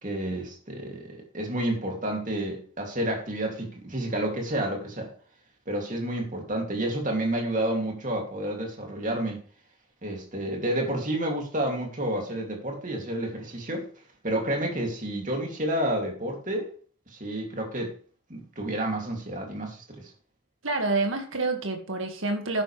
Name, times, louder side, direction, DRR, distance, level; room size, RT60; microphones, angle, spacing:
voice 1, 0.0-5.1 5.7-9.4 10.0-13.9 14.2-16.7 17.1-17.9 18.3-20.1, right 1 dB, 35° right, 2.8 m, -30 dB
voice 2, 20.6-22.6, right 3 dB, 65° right, 2.1 m, -27 dB
11.0 x 9.8 x 3.4 m
head